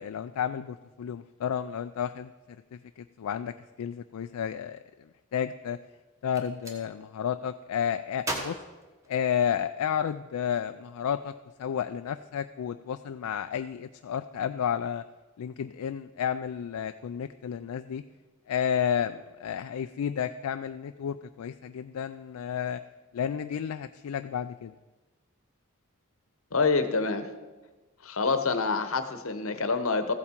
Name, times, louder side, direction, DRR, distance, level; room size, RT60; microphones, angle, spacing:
voice 1, 0.0-2.3 2.7-4.8 5.3-5.8 6.2-8.6 9.1-11.3 11.6-15.0 15.4-18.0 18.5-22.8 23.1-24.7, left 8 dB, 80° left, 9 dB, 0.3 m, -31 dB
Gunshot gunfire, 6.2-6.8 8.2-9.7, right 1 dB, 15° right, 1.3 m, -37 dB
voice 2, 26.5-27.3 28.0-30.1, left 4 dB, 65° left, 9 dB, 0.9 m, -26 dB
14.5 x 8.3 x 4.4 m, 1.2 s
head